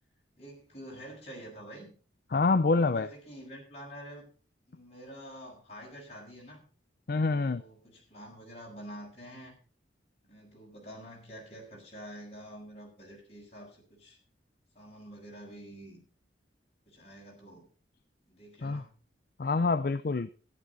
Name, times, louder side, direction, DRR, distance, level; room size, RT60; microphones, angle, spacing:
voice 1, 0.4-1.9 2.6-4.3 4.7-6.7 7.3-9.6 10.2-14.2 14.7-16.0 16.9-17.7 18.3-19.0, equal, 35° left, -2 dB, 5.8 m, -47 dB
voice 2, 2.3-3.1 7.1-7.6 18.6-18.8 19.4-20.3, left 3 dB, 55° left, 12 dB, 0.5 m, -26 dB
13.0 x 11.5 x 4.1 m, 0.38 s
head